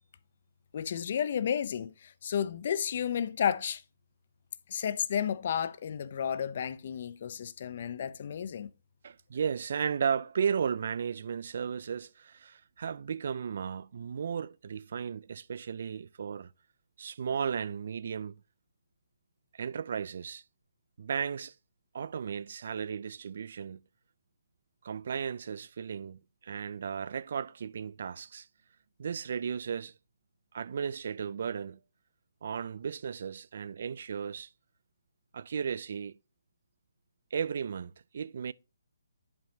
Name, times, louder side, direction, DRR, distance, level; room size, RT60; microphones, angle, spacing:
voice 1, 0.7-3.8 4.7-8.7, left 8 dB, 50° left, 0.6 m, -32 dB
voice 2, 9.0-16.5 17.0-18.3 19.5-20.4 21.0-21.5 21.9-23.8 24.8-28.5 29.0-29.9 30.5-31.8 32.4-34.5 35.3-36.2 37.3-38.5, right 7 dB, 55° right, 0.4 m, -35 dB
10.5 x 5.1 x 2.8 m
hypercardioid pair, 155°, 0 cm